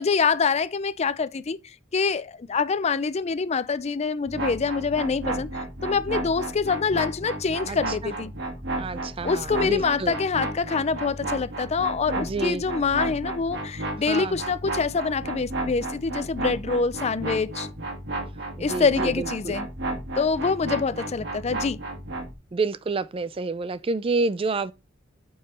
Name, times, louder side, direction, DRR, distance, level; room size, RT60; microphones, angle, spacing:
voice 1, 0.0-1.6 1.9-8.3 9.2-17.7 18.6-19.7 20.2-21.8, left 5 dB, 35° left, 0.4 m, -25 dB
sound 1, 4.3-22.3, right 2 dB, 60° right, 2.1 m, -33 dB
voice 2, 7.7-8.1 8.8-10.2 12.2-12.6 14.1-14.4 18.6-19.5 22.5-24.7, right 3 dB, 30° right, 0.4 m, -29 dB
8.7 x 5.5 x 4.2 m
head